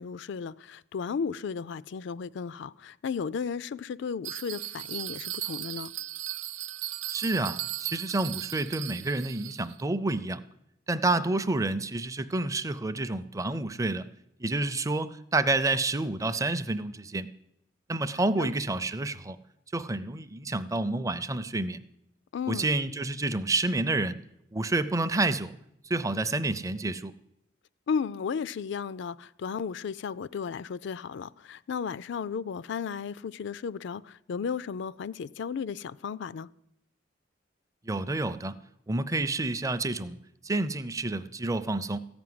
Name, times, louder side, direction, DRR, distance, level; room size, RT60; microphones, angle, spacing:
voice 1, 0.0-5.9 18.4-18.5 22.3-22.7 27.9-36.5, left 6 dB, 65° left, 0.4 m, -34 dB
Bell, 4.2-9.8, right 15 dB, 80° right, 0.5 m, -37 dB
voice 2, 7.1-10.4 10.9-14.1 14.4-17.3 17.9-19.4 19.7-21.8 22.5-24.2 24.5-25.5 25.8-27.1 37.8-38.5 38.9-40.2 40.4-42.0, right 2 dB, 15° right, 0.5 m, -29 dB
14.5 x 6.0 x 9.4 m
head